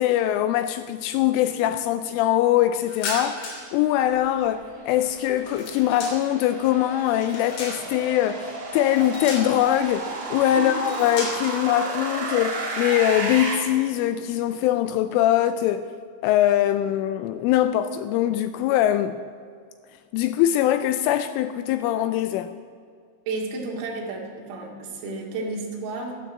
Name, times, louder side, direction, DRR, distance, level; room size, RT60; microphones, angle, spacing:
voice 1, 0.0-15.8 16.2-19.1 20.1-22.5, left 12 dB, 85° left, 2.9 m, -22 dB
sound 1, 2.9-3.8 4.1-6.5 6.9-8.1 8.9-9.8 10.6-11.6, left 3 dB, 65° left, 5.5 m, -35 dB
sound 2, 4.0-13.5, right 3 dB, 45° right, 2.2 m, -33 dB
voice 2, 23.3-26.1, right 3 dB, 75° right, 4.9 m, -32 dB
12.5 x 12.5 x 7.3 m
omnidirectional pair, 6.0 m